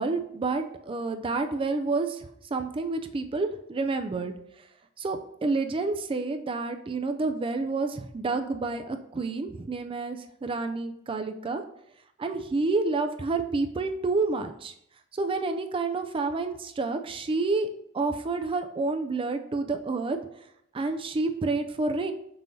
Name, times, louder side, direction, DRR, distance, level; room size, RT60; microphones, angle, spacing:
voice 1, 0.0-4.3 5.0-11.6 12.2-14.7 15.1-17.7 17.9-20.2 20.7-22.1, right 3 dB, 25° right, 7 dB, 0.4 m, -29 dB
7.5 x 5.5 x 2.7 m, 0.75 s
head